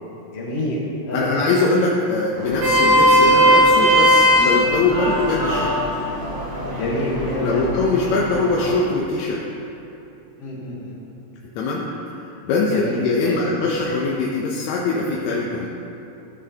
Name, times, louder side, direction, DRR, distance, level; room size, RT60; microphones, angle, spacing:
voice 1, 0.3-0.8 1.1-1.3 6.6-7.6 10.4-10.9 12.7-13.3, left 1 dB, 60° left, -4 dB, 2.1 m, -27 dB
voice 2, 1.1-5.7 7.4-9.4 11.5-11.8 12.1-12.2 12.4-15.7, left 3 dB, 75° left, -3 dB, 1.9 m, -22 dB
Vehicle horn car horn honking, 2.4-8.8, equal, 45° right, 2.9 m, -18 dB
14.0 x 6.2 x 2.8 m, 2.8 s
omnidirectional pair, 3.3 m